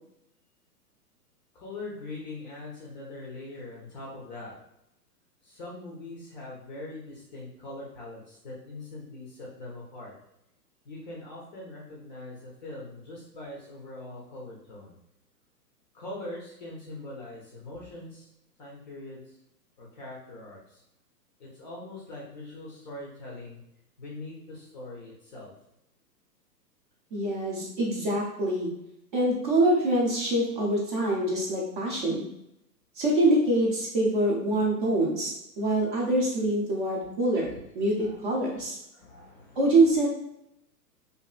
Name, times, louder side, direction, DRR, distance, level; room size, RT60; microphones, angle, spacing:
voice 1, 1.6-4.5 5.5-10.1 10.9-14.9 15.9-18.2 18.6-19.2 19.8-20.6 21.4-23.6 24.0-25.5 38.0-38.1 39.0-39.6, left 2 dB, 30° left, -4 dB, 0.5 m, -42 dB
voice 2, 27.1-28.7 29.1-32.2 33.0-38.8 39.6-40.1, right 1 dB, 30° right, -3 dB, 0.5 m, -25 dB
2.7 x 2.5 x 2.3 m, 0.82 s
hypercardioid pair, 125°, 50 cm